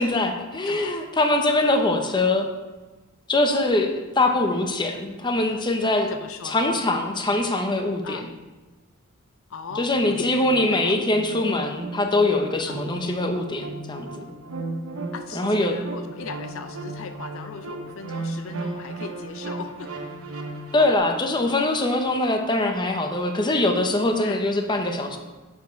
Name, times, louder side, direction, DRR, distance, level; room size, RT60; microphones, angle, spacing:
voice 1, 0.0-2.5 3.3-6.1 6.4-8.3 9.7-14.1 15.3-15.7 20.7-25.2, left 2 dB, 20° left, 4 dB, 0.7 m, -23 dB
voice 2, 0.7-1.0 6.1-6.8 8.0-8.3 9.5-10.3 10.7-10.9 12.7-12.8 15.1-19.9 24.2-24.5, left 5 dB, 70° left, 9 dB, 0.4 m, -38 dB
sound 1, 9.7-21.0, right 2 dB, 80° right, 1.0 m, -35 dB
6.8 x 5.5 x 5.1 m, 1.2 s
head